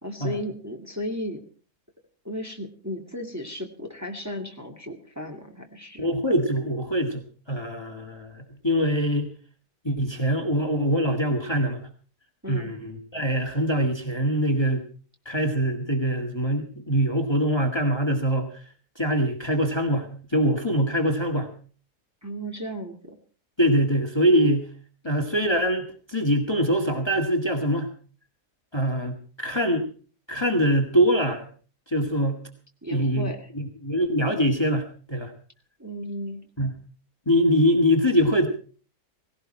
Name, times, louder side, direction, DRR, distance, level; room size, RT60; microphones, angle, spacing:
voice 1, 0.0-1.4 2.2-6.1 12.4-12.7 22.2-23.2 32.8-33.5 35.8-36.4, equal, 10° right, 2 dB, 2.1 m, -35 dB
voice 2, 6.0-9.3 9.8-11.8 12.5-14.8 15.3-18.6 19.0-21.5 23.6-24.7 25.0-27.9 28.7-29.9 30.3-31.5 31.9-32.4 32.9-33.3 33.5-35.3 36.6-36.7 37.3-38.5, equal, 15° left, 4 dB, 1.9 m, -23 dB
18.5 x 17.0 x 4.4 m, 0.41 s
omnidirectional pair, 1.7 m